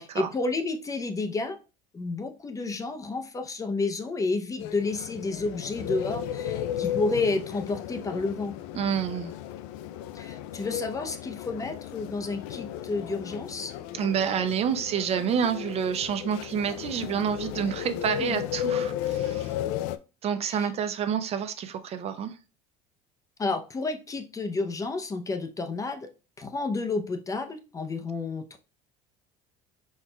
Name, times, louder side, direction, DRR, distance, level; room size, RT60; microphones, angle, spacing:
voice 1, 0.0-1.6 1.9-8.6 10.1-13.7 18.2-18.4 20.5-20.7 23.4-26.1 26.4-28.6, left 3 dB, 20° left, 0.6 m, -31 dB
sound 1, 4.6-20.0, left 10 dB, 75° left, 0.4 m, -34 dB
voice 2, 8.7-9.3 13.9-19.5 20.2-22.3, right 8 dB, 40° right, 0.4 m, -28 dB
4.6 x 4.3 x 2.2 m
supercardioid pair, 115°, 17 cm